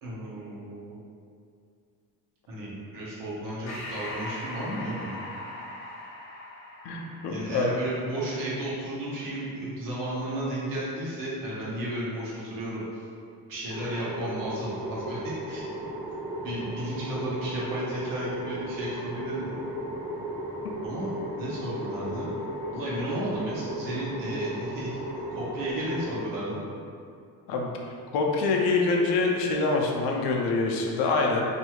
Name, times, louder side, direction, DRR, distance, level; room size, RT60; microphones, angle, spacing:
voice 1, 0.0-1.0 2.5-5.2 7.3-13.0 13.5-15.6 16.4-19.5 20.8-22.3 22.7-25.0 25.3-26.6, right 1 dB, 60° right, -7 dB, 0.9 m, -33 dB
Breathing, 3.7-8.5, left 1 dB, 45° left, 0.6 m, -40 dB
voice 2, 6.8-7.7 27.5-27.7 28.1-31.5, left 3 dB, 90° left, 0 dB, 0.5 m, -25 dB
sound 1, 13.7-26.2, right 1 dB, 5° right, 0.4 m, -35 dB
2.6 x 2.3 x 3.0 m, 2.4 s
cardioid pair, 155°, 38 cm